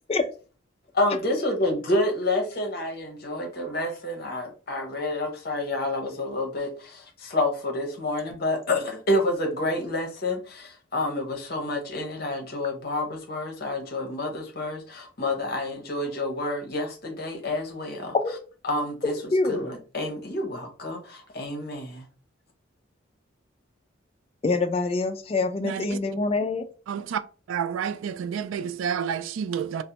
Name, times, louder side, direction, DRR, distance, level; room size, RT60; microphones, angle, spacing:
voice 1, 0.9-18.1 18.6-19.2 19.5-22.1, left 1 dB, 50° left, 0.8 m, -29 dB
voice 2, 19.0-19.7 24.4-26.6, left 3 dB, 30° left, 0.3 m, -25 dB
voice 3, 25.6-26.0 26.9-27.2 27.5-29.8, right 7 dB, 85° right, 0.3 m, -29 dB
3.1 x 2.0 x 2.8 m
head